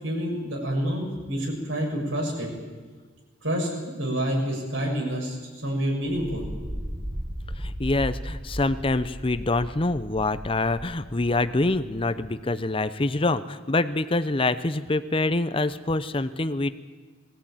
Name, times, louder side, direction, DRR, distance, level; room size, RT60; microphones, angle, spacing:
voice 1, 0.0-2.5 3.4-5.4 5.6-6.4, equal, 75° right, -1 dB, 7.2 m, -28 dB
sound 1, 6.4-12.1, equal, 10° right, 1.3 m, -36 dB
voice 2, 7.6-16.7, left 2 dB, 25° left, 13 dB, 0.7 m, -25 dB
21.5 x 17.0 x 9.1 m, 1.4 s
head